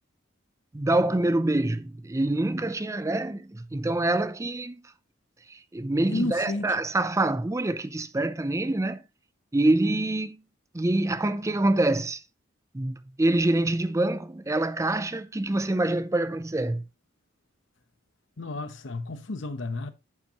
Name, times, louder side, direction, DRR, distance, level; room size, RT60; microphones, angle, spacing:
voice 1, 0.7-4.8 5.5-9.0 9.5-10.4 10.7-12.2 12.7-16.8, right 2 dB, 15° right, 0.5 m, -26 dB
voice 2, 6.1-6.7 18.4-19.9, left 2 dB, 65° left, 0.9 m, -31 dB
9.6 x 7.3 x 3.0 m
head